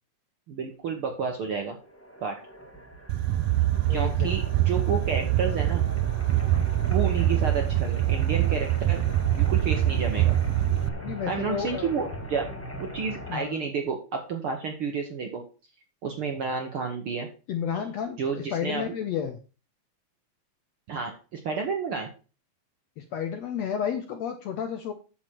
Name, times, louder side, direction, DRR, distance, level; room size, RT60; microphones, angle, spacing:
voice 1, 0.5-1.8 2.2-2.3 3.9-5.8 6.9-9.0 9.3-10.3 11.3-12.5 12.8-15.4 16.0-17.3 18.2-18.8 20.9-22.1, right 5 dB, 60° right, 3 dB, 1.4 m, -30 dB
sound 1, 1.8-13.3, equal, 10° left, 0.7 m, -39 dB
sound 2, 3.1-10.9, right 14 dB, 80° right, 2.0 m, -24 dB
voice 2, 3.9-4.5 11.0-11.9 13.3-13.6 17.5-19.4 23.0-24.9, left 8 dB, 75° left, 7 dB, 1.6 m, -31 dB
9.4 x 7.2 x 4.5 m, 0.35 s
omnidirectional pair, 3.9 m